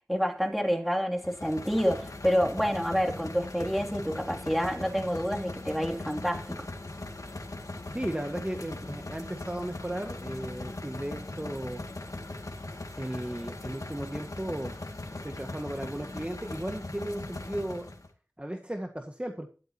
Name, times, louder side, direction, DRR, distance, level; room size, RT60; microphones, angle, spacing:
voice 1, 0.1-6.7, equal, ahead, 3.0 m, -28 dB
sound 1, 1.2-18.1, left 2 dB, 85° left, 2.3 m, -40 dB
voice 2, 7.9-11.8 13.0-14.7 15.2-17.9 18.4-19.5, right 1 dB, 20° right, 1.8 m, -35 dB
13.0 x 12.0 x 3.0 m
wide cardioid pair, 45°, 6 cm